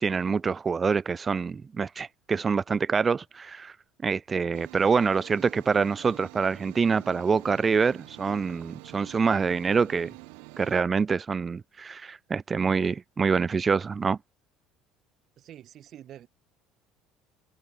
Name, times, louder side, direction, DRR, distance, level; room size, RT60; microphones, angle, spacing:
voice 1, 0.0-3.7 4.0-10.1 10.6-14.2, right 5 dB, 20° right, 0.4 m, -26 dB
sound 1, 4.5-10.8, right 40 dB or more, 90° right, 2.6 m, -47 dB
voice 2, 15.4-16.3, right 11 dB, 45° right, 1.9 m, -47 dB
cardioid pair, 140°, 0 cm